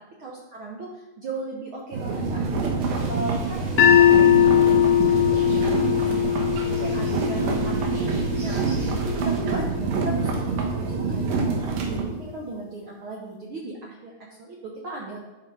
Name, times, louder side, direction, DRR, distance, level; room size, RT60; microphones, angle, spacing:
voice 1, 0.2-2.7 3.1-8.1 8.4-8.6 9.0-14.1 14.4-15.2, right 2 dB, 75° right, -2 dB, 1.2 m, -37 dB
sound 1, 1.9-12.0, right 4 dB, 90° right, 2.9 m, -26 dB
sound 2, 2.8-9.4, right 2 dB, 45° right, 2.1 m, -43 dB
sound 3, 3.8-9.9, left 10 dB, 75° left, 1.5 m, -21 dB
11.0 x 4.8 x 4.9 m, 1.2 s
omnidirectional pair, 3.8 m